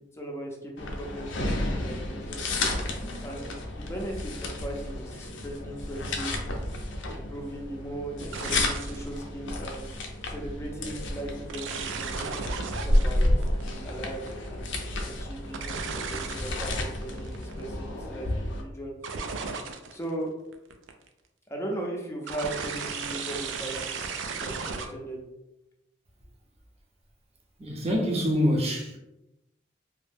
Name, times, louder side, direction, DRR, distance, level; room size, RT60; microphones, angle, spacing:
voice 1, 0.1-2.6 3.2-6.3 7.1-10.0 10.2-12.3 12.8-18.9 19.9-20.3 21.5-25.2, right 1 dB, 15° left, 0.5 m, -38 dB
sound 1, 0.8-18.6, left 1 dB, 75° left, 0.5 m, -31 dB
sound 2, 6.4-6.5 8.2-9.1 9.8-10.1 11.5-14.5 15.5-16.7 17.0-17.6 19.0-20.1 20.5-21.1 22.3-24.9, right 5 dB, 75° right, 0.3 m, -35 dB
voice 2, 27.6-29.0, equal, 35° right, 0.6 m, -25 dB
2.6 x 2.0 x 3.3 m
head